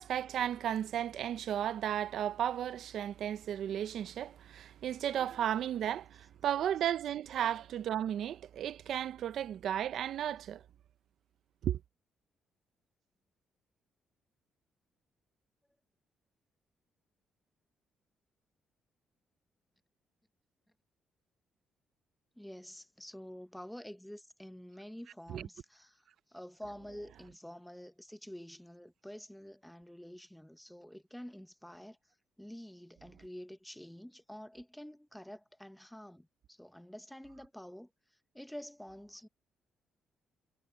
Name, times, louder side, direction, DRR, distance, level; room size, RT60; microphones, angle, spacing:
voice 1, 0.0-10.6 11.6-11.8 25.3-25.5, right 10 dB, 70° right, 0.7 m, -34 dB
voice 2, 22.4-32.0 32.4-37.9 38.3-39.3, equal, 5° left, 1.2 m, -48 dB
cardioid pair, 90°, 0 cm